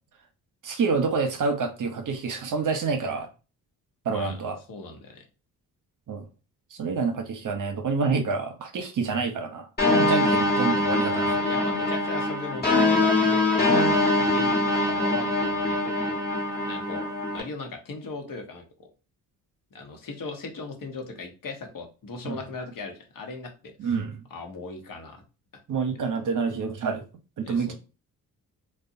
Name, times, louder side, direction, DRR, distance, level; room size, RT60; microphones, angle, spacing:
voice 1, 0.6-3.3 4.1-4.6 6.1-6.3 6.7-9.7 10.0-11.4 14.2-14.3 22.2-22.4 23.8-24.2 25.7-27.0 27.4-27.7, right 4 dB, 50° right, 0.7 m, -27 dB
voice 2, 4.1-4.4 4.7-5.2 10.0-10.4 11.2-13.7 14.2-16.2 16.6-17.0 17.3-18.6 19.7-23.7 24.3-25.2 27.4-27.7, left 3 dB, 55° left, 0.9 m, -38 dB
sound 1, 9.8-17.4, left 2 dB, 25° left, 1.1 m, -23 dB
2.6 x 2.2 x 2.6 m
supercardioid pair, 55°, 40 cm